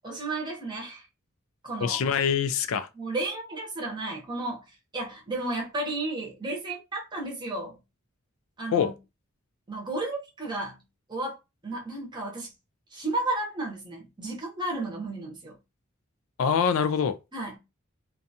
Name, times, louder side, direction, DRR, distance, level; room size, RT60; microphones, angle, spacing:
voice 1, 0.0-1.1 1.6-2.0 2.9-4.6 4.9-7.8 8.6-8.9 9.7-10.8 11.1-11.4 11.6-12.5 12.9-15.6 17.3-17.6, right 2 dB, 20° right, 0.7 m, -33 dB
voice 2, 1.8-2.9 8.7-8.9 16.4-17.2, left 7 dB, 75° left, 0.3 m, -24 dB
2.6 x 2.3 x 2.7 m
head